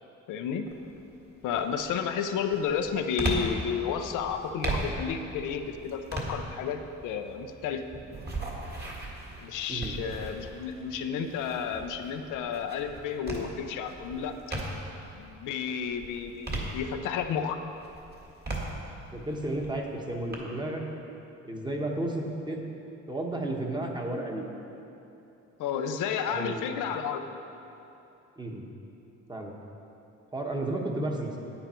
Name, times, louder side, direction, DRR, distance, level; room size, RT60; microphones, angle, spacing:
voice 1, 0.3-0.7 1.4-7.8 9.4-14.4 15.2-17.6 25.6-27.2, left 7 dB, 90° left, 6 dB, 0.7 m, -32 dB
sound 1, 0.6-1.0 1.5-15.1 15.5-17.3 17.8-20.4, right 2 dB, 35° right, 1.8 m, -37 dB
voice 2, 19.1-20.8 21.4-22.6 23.1-24.4 26.3-26.7 28.4-28.6 29.3-29.5 30.3-31.4, right 1 dB, 15° right, 0 dB, 1.2 m, -32 dB
9.0 x 8.8 x 4.4 m, 2.9 s
cardioid pair, 90°, 30 cm